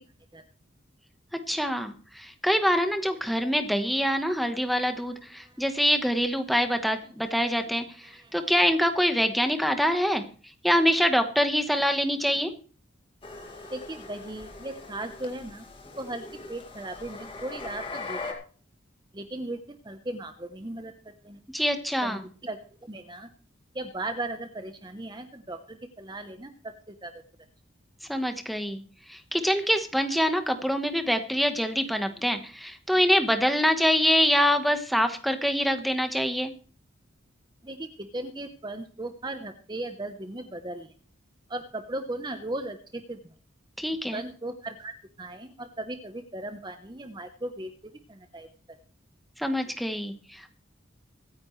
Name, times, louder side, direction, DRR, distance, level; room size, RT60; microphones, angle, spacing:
voice 1, 1.5-12.5 21.5-22.2 28.1-36.5 43.8-44.2 49.4-50.5, equal, ahead, 7 dB, 1.2 m, -25 dB
sound 1, 13.2-18.3, left 3 dB, 25° left, 2.3 m, -41 dB
voice 2, 13.7-15.7 15.9-18.2 19.1-21.4 22.0-23.3 23.7-26.5 26.9-27.1 37.6-40.9 41.5-43.2 44.1-44.9 45.2-47.7 48.1-48.5, right 2 dB, 20° right, 7 dB, 0.9 m, -37 dB
24.5 x 9.6 x 3.2 m, 0.41 s
head